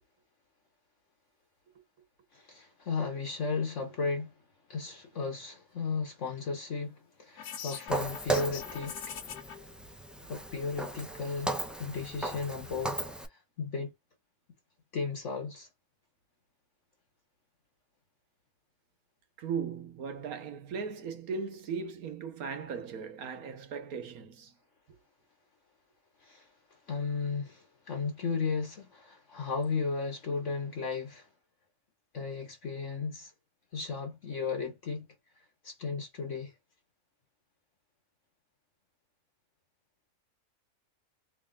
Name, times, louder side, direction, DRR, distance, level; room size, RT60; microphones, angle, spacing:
voice 1, 2.3-4.3 4.7-9.1 10.3-11.5 11.8-13.0 13.3-13.9 14.9-15.7 26.2-31.3 32.1-33.3 33.7-35.1 35.4-36.5, left 4 dB, 55° left, 1.3 m, -35 dB
sound 1, 7.4-9.6, left 8 dB, 80° left, 1.4 m, -42 dB
Walk footsteps, 7.9-13.3, right 2 dB, ahead, 0.5 m, -36 dB
voice 2, 19.4-24.5, right 6 dB, 80° right, 1.5 m, -37 dB
3.8 x 3.2 x 2.4 m
omnidirectional pair, 1.5 m